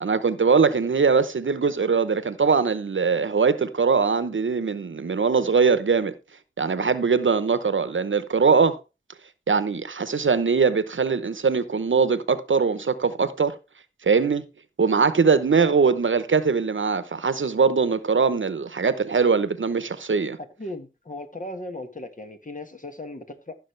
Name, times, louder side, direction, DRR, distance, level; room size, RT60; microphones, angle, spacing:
voice 1, 0.0-6.1 6.6-8.8 9.5-13.5 14.0-14.4 14.8-20.4, right 5 dB, 75° right, 0.9 m, -21 dB
voice 2, 20.4-23.6, left 1 dB, 40° left, 1.6 m, -37 dB
14.5 x 6.2 x 3.3 m
wide cardioid pair, 50°, 20 cm